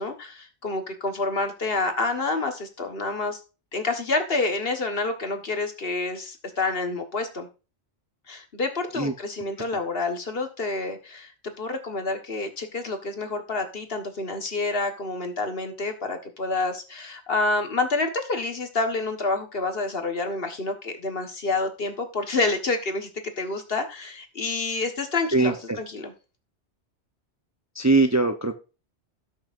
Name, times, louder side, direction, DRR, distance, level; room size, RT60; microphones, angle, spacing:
voice 1, 0.0-3.4 3.7-7.5 8.3-11.3 11.6-23.1 23.4-26.1, left 3 dB, 55° left, 1.6 m, -28 dB
voice 2, 25.3-25.8 27.8-28.6, right 3 dB, 15° right, 0.7 m, -21 dB
17.0 x 6.3 x 2.6 m
omnidirectional pair, 1.2 m